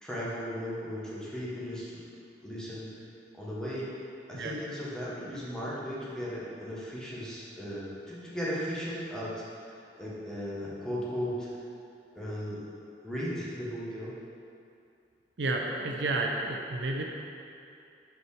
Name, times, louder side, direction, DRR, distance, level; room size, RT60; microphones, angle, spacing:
voice 1, 0.0-2.0 2.4-2.9 3.3-11.5 12.1-12.6 13.0-14.1, equal, 5° left, -7 dB, 1.2 m, -36 dB
voice 2, 15.4-17.0, right 2 dB, 70° right, 0 dB, 0.6 m, -31 dB
5.5 x 4.4 x 4.8 m, 2.5 s
head